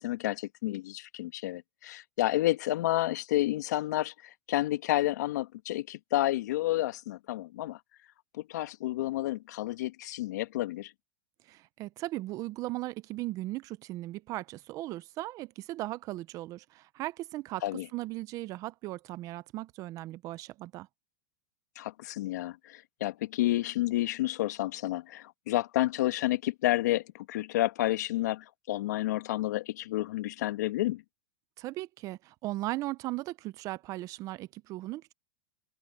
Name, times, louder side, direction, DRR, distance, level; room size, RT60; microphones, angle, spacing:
voice 1, 0.0-7.8 8.5-10.9 17.6-17.9 21.8-31.0, left 15 dB, 75° left, 1.8 m, -30 dB
voice 2, 11.4-20.9 31.6-35.1, right 17 dB, 35° right, 0.7 m, -37 dB
open air
supercardioid pair, 135°, 9 cm